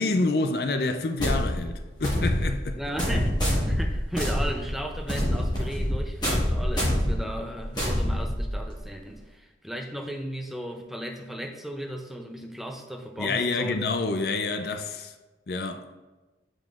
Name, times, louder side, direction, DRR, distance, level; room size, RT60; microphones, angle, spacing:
voice 1, 0.0-2.8 13.2-15.1 15.5-15.9, left 3 dB, 60° left, 0.5 m, -27 dB
sound 1, 1.2-8.8, equal, 25° left, 1.6 m, -26 dB
voice 2, 2.8-13.8, equal, ahead, 0.4 m, -36 dB
7.5 x 5.2 x 2.4 m
head